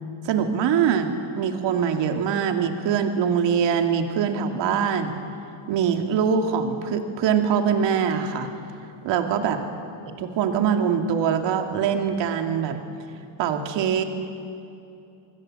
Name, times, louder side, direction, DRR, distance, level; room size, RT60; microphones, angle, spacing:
voice 1, 0.2-1.1 1.3-5.1 5.7-8.5 9.0-9.6 10.2-12.8 13.4-14.0, right 7 dB, 60° right, 5 dB, 2.5 m, -23 dB
27.5 x 20.5 x 7.8 m, 2.6 s
cardioid pair, 120°, 49 cm